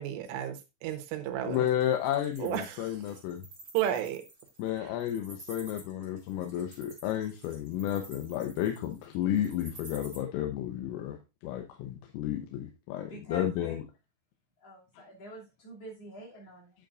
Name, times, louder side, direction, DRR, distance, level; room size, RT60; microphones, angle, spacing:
voice 1, 0.0-1.7 2.4-3.0 3.7-4.2 4.8-4.9, right 11 dB, 75° right, 6 dB, 3.6 m, -33 dB
voice 2, 1.5-3.4 4.6-11.2 11.4-13.8 15.0-15.1, left 11 dB, 85° left, 4 dB, 3.5 m, -32 dB
Wild animals, 1.5-10.2, right 2 dB, 15° right, 5.3 m, -50 dB
voice 3, 13.1-13.8 14.6-16.7, right 1 dB, 40° left, -3 dB, 2.9 m, -46 dB
9.3 x 9.0 x 2.5 m, 0.26 s
omnidirectional pair, 5.9 m